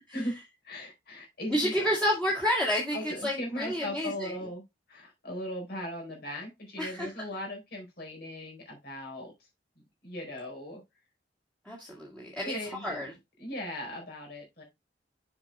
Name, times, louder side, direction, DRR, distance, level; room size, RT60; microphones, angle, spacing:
voice 1, 0.6-1.7 2.9-4.6 4.9-9.3 10.0-10.8 12.4-13.0 13.4-14.6, left 1 dB, 60° left, 0 dB, 4.2 m, -38 dB
voice 2, 1.5-4.4 6.8-7.1 11.7-13.1, equal, 5° left, -4 dB, 2.0 m, -30 dB
7.2 x 5.3 x 3.5 m, 0.21 s
head